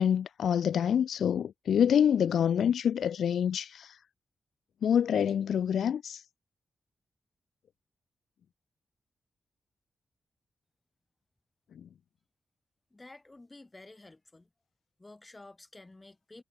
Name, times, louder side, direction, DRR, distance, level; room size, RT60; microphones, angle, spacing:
voice 1, 0.0-4.0 4.8-6.2, left 8 dB, 85° left, 0.8 m, -26 dB
voice 2, 12.9-14.5 15.0-16.4, left 2 dB, 20° left, 7.4 m, -51 dB
cardioid pair, 85°, 0 cm